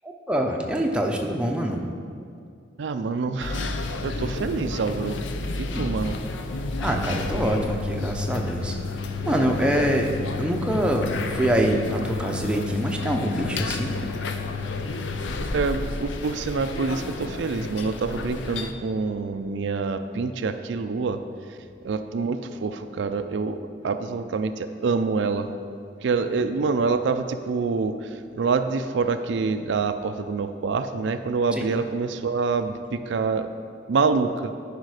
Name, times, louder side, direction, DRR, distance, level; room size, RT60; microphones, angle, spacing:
voice 1, 0.0-1.8 5.7-5.9 6.8-8.8 9.2-14.0 31.5-31.7, right 1 dB, 5° right, 1 dB, 0.6 m, -25 dB
voice 2, 2.8-5.2 5.6-6.2 15.5-21.2 21.8-25.5 26.0-33.5 33.9-34.5, right 4 dB, 70° right, 9 dB, 0.4 m, -26 dB
sound 1, 3.4-18.7, left 3 dB, 80° left, 0.6 m, -31 dB
10.5 x 5.1 x 4.9 m, 2.4 s
head